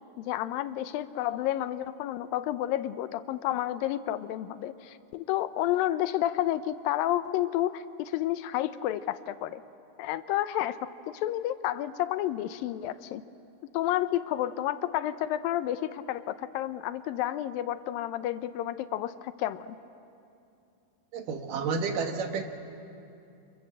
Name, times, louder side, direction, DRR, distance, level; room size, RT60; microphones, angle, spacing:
voice 1, 0.2-9.6 10.0-13.2 13.7-19.8, left 13 dB, 90° left, 12 dB, 2.5 m, -30 dB
voice 2, 21.1-22.4, right 5 dB, 70° right, 5 dB, 3.1 m, -30 dB
29.0 x 26.5 x 7.6 m, 2.6 s
omnidirectional pair, 4.0 m